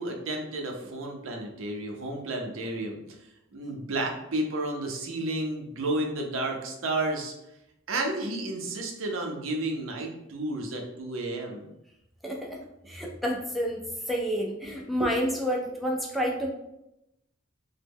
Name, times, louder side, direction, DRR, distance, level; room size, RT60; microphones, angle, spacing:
voice 1, 0.0-3.0 3.5-7.3 7.9-11.7 14.6-14.7 15.0-15.1, right 2 dB, 70° right, 2 dB, 0.6 m, -32 dB
voice 2, 12.2-12.6 12.9-16.5, equal, ahead, -2 dB, 0.4 m, -29 dB
3.0 x 2.1 x 3.4 m, 0.85 s
head